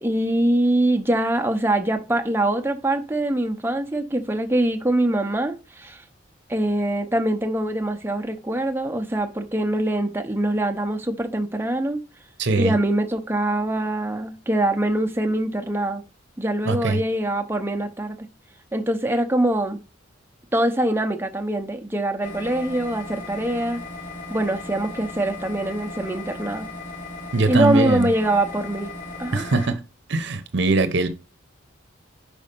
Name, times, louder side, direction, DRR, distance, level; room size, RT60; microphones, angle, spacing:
voice 1, 0.0-6.0 6.5-12.0 12.6-16.0 16.4-18.3 18.7-19.8 20.5-23.8 24.3-26.7 27.5-28.9 29.2-29.4, right 1 dB, 10° right, 0.7 m, -23 dB
voice 2, 12.4-12.7 16.6-17.0 27.3-28.1 29.3-29.8 30.1-31.1, right 3 dB, 65° right, 0.8 m, -21 dB
sound 1, 22.2-29.7, left 2 dB, 80° left, 3.2 m, -36 dB
5.5 x 5.0 x 5.2 m
head